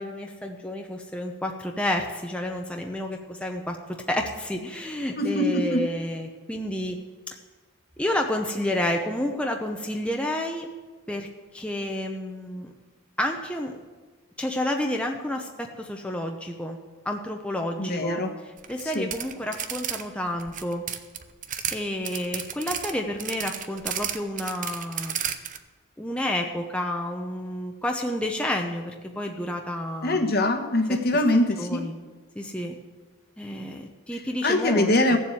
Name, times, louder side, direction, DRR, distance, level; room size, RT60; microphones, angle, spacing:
voice 1, 0.0-7.0 7.3-7.4 8.0-10.7 11.1-11.3 11.5-12.7 13.2-13.7 14.4-16.8 17.0-20.8 21.7-25.1 26.0-30.3 30.9-31.0 31.3-32.0 32.4-32.8 33.4-35.2, left 1 dB, 5° left, 2 dB, 0.7 m, -30 dB
voice 2, 5.2-5.8 17.8-18.3 18.9-19.1 30.0-31.8 34.4-35.2, left 1 dB, 45° left, 6 dB, 1.2 m, -23 dB
sound 1, 18.6-20.0 20.3-21.8 22.0-25.6, right 9 dB, 35° right, 0.7 m, -32 dB
15.5 x 7.3 x 7.8 m, 1.3 s
head